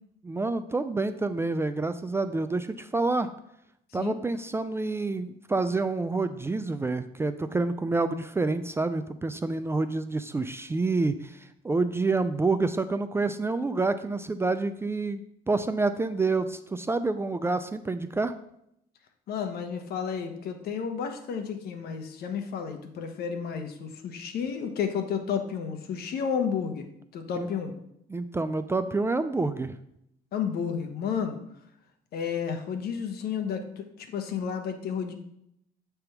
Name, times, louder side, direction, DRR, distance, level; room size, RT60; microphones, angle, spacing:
voice 1, 0.2-3.3 3.9-18.3 27.3-27.5 28.1-29.7, right 3 dB, 15° right, 10 dB, 0.3 m, -28 dB
voice 2, 19.3-26.9 27.1-27.7 30.3-31.4 32.1-35.1, left 7 dB, 65° left, 6 dB, 1.1 m, -31 dB
7.9 x 3.5 x 5.8 m, 0.76 s
cardioid pair, 110°, 17 cm